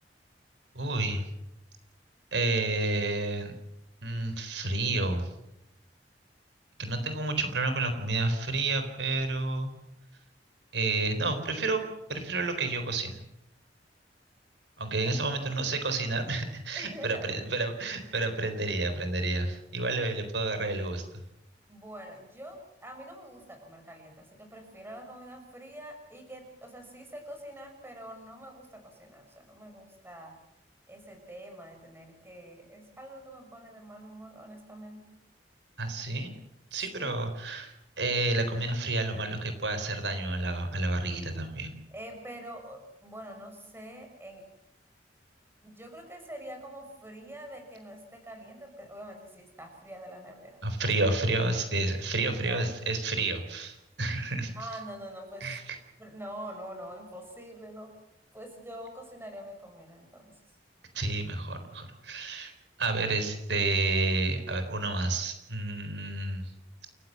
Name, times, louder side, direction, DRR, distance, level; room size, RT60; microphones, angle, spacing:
voice 1, 0.7-1.3 2.3-3.5 4.0-5.3 6.8-9.7 10.7-13.2 14.8-21.0 35.8-36.3 36.7-41.7 50.6-54.5 55.4-55.8 60.9-62.5 62.8-66.5, right 2 dB, 80° right, 8 dB, 4.1 m, -30 dB
voice 2, 16.7-17.3 21.7-30.4 30.9-35.2 36.9-37.2 41.9-44.5 45.6-50.6 52.2-52.6 54.5-55.5 56.0-57.9 58.3-60.3, right 1 dB, 15° right, 4 dB, 6.3 m, -45 dB
29.0 x 15.5 x 7.6 m, 0.84 s
head